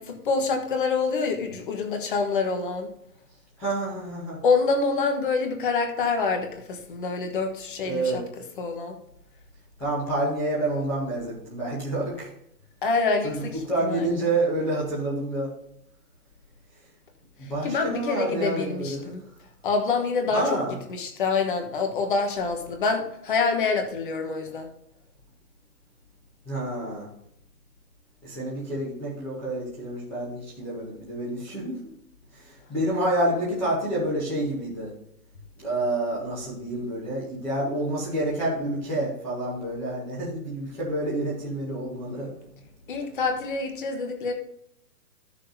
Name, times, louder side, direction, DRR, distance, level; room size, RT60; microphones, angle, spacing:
voice 1, 0.0-2.9 4.4-8.2 8.6-9.0 12.8-14.2 17.4-19.2 19.6-20.5 20.9-24.7 42.9-44.3, left 4 dB, 30° left, 4 dB, 1.3 m, -26 dB
voice 2, 3.6-4.4 7.8-8.2 9.8-12.3 13.2-15.5 17.4-19.1 20.3-20.8 26.4-27.1 28.2-31.9 32.3-34.9 35.6-42.3, right 1 dB, 5° left, -10 dB, 0.8 m, -28 dB
14.0 x 6.5 x 2.7 m, 0.76 s
hypercardioid pair, 170°, 49 cm